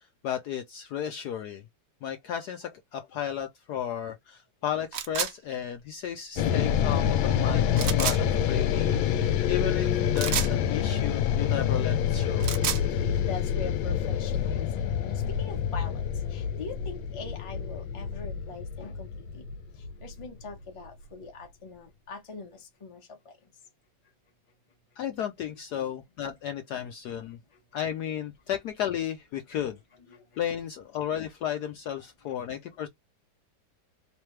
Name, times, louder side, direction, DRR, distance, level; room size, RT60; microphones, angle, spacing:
voice 1, 0.0-1.6 2.0-12.5 25.0-27.4 27.7-29.8 30.4-32.9, left 10 dB, 70° left, 1.0 m, -34 dB
sound 1, 4.9-5.3 7.7-8.2 10.2-10.5 12.2-12.8, right 9 dB, 65° right, 0.8 m, -29 dB
sound 2, 6.4-20.6, left 9 dB, 85° left, 1.4 m, -27 dB
voice 2, 13.0-19.1 19.3-19.4 20.0-23.0, left 4 dB, 25° left, 0.8 m, -42 dB
3.3 x 3.3 x 3.1 m
omnidirectional pair, 2.1 m